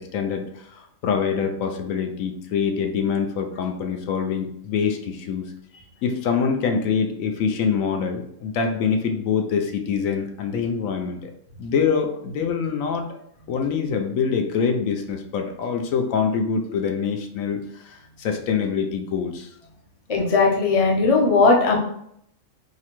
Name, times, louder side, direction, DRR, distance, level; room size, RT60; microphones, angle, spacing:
voice 1, 0.0-5.5 6.0-11.3 11.6-13.2 13.5-19.5, left 6 dB, 80° left, 4 dB, 1.0 m, -25 dB
voice 2, 20.1-21.8, left 3 dB, 35° left, -1 dB, 0.6 m, -18 dB
4.7 x 2.2 x 2.9 m, 0.70 s
omnidirectional pair, 1.4 m